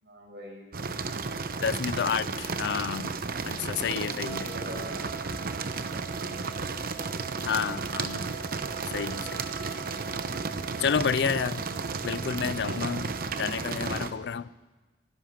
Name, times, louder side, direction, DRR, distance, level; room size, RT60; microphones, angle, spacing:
voice 1, 0.0-0.6 3.7-6.2, equal, 70° right, 5.8 m, -45 dB
sound 1, 0.7-14.1, right 4 dB, 55° right, 0.9 m, -33 dB
voice 2, 1.6-3.1 3.4-4.4 7.4-8.3 8.9-9.4 10.8-11.6 12.0-13.1 13.4-14.5, left 6 dB, 65° left, 0.4 m, -30 dB
Wind instrument woodwind instrument, 4.2-13.6, right 10 dB, 5° right, 1.7 m, -44 dB
23.5 x 10.5 x 5.8 m
head